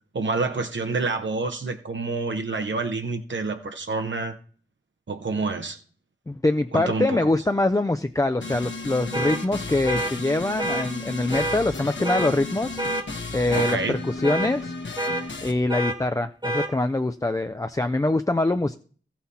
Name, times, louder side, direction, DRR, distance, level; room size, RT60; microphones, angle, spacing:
voice 1, 0.1-4.4 5.1-5.8 6.7-7.4 13.5-13.9, right 3 dB, 65° right, 0.9 m, -28 dB
voice 2, 6.3-12.8 13.3-14.7 15.4-18.7, left 2 dB, 15° left, 0.4 m, -24 dB
sound 1, 8.4-15.5, left 3 dB, 65° left, 1.2 m, -34 dB
sound 2, 9.1-9.4 9.9-10.1 10.6-10.9 11.3-11.6 12.0-12.3 12.8-13.0 13.5-13.8 14.2-14.5 15.0-15.2 15.7-16.0 16.4-16.7, right 1 dB, 20° right, 1.4 m, -27 dB
14.5 x 5.8 x 4.2 m
wide cardioid pair, 55°, 20 cm